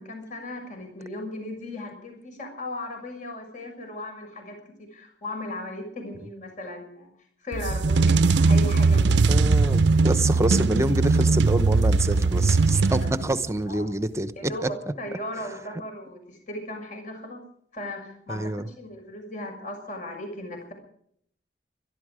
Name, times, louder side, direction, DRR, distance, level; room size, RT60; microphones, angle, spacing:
voice 1, 0.0-7.1 7.4-9.2 9.7-9.8 10.3-10.4 13.0-13.1 13.7-13.9 14.4-17.4 17.7-20.7, left 1 dB, 45° left, 4 dB, 6.5 m, -37 dB
sound 1, 7.5-13.5, right 3 dB, 75° right, 0.6 m, -20 dB
voice 2, 9.3-14.3 14.6-14.7 18.3-18.7, right 1 dB, 15° right, 13 dB, 0.9 m, -26 dB
22.5 x 13.0 x 5.0 m, 0.65 s
head